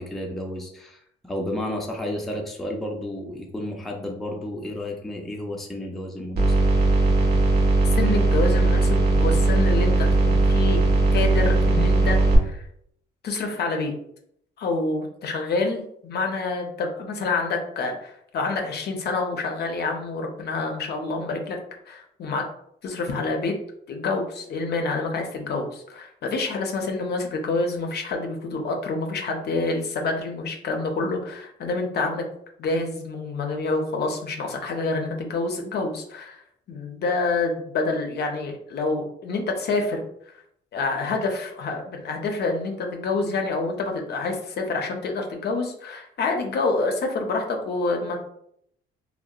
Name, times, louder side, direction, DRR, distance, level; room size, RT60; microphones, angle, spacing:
voice 1, 0.0-6.6, left 1 dB, ahead, 0 dB, 0.4 m, -32 dB
sound 1, 6.4-12.4, right 2 dB, 55° right, 0.7 m, -19 dB
voice 2, 8.0-10.8 11.1-12.6 13.2-13.9 14.6-21.6 21.9-22.4 22.8-23.5 23.9-32.2 32.6-36.4 36.7-40.0 40.7-48.2, left 3 dB, 55° left, 3 dB, 0.5 m, -27 dB
2.7 x 2.0 x 2.3 m, 0.71 s
cardioid pair, 90°, 20 cm